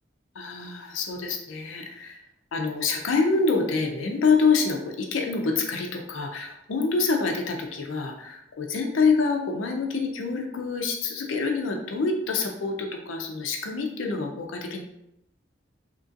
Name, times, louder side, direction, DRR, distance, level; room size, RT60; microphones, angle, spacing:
voice 1, 0.4-2.2 2.5-14.8, left 4 dB, 85° left, 3 dB, 0.5 m, -26 dB
2.9 x 2.6 x 2.5 m, 0.83 s
head